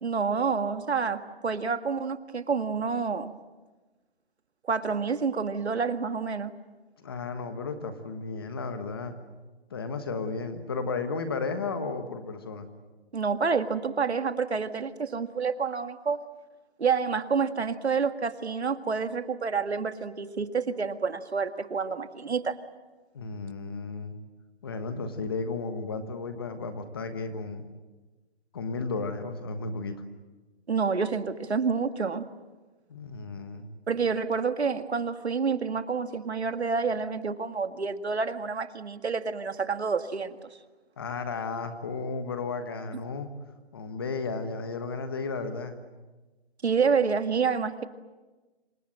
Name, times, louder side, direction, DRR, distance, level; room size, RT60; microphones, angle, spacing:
voice 1, 0.0-3.3 4.6-6.5 13.1-16.2 16.8-22.6 30.7-32.3 33.9-40.4 46.6-47.8, right 5 dB, 85° right, 9 dB, 2.0 m, -28 dB
voice 2, 7.0-9.2 9.7-12.7 23.1-24.2 24.6-27.7 28.5-30.0 32.9-33.7 41.0-43.3 43.7-45.8, left 4 dB, 20° left, 9 dB, 1.3 m, -34 dB
27.0 x 26.0 x 7.6 m, 1.2 s
hypercardioid pair, 175°, 32 cm